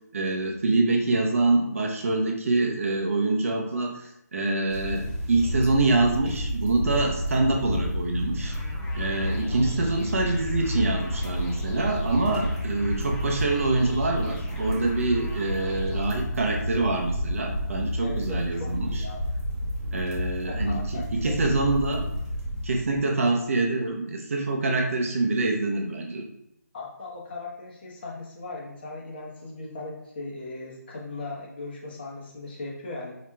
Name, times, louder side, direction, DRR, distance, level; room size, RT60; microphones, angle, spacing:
voice 1, 0.1-8.5 8.9-19.0 19.9-22.0 22.6-26.2, right 2 dB, 50° right, 1 dB, 0.7 m, -25 dB
sound 1, 4.7-23.0, equal, 25° right, 1.0 m, -30 dB
sound 2, 8.4-16.0, left 1 dB, 10° left, 0.3 m, -43 dB
voice 2, 18.0-19.3 20.4-21.6 26.7-33.1, left 3 dB, 35° left, -3 dB, 1.0 m, -38 dB
4.7 x 3.1 x 2.2 m, 0.81 s
figure-of-eight pair, 160°, 9 cm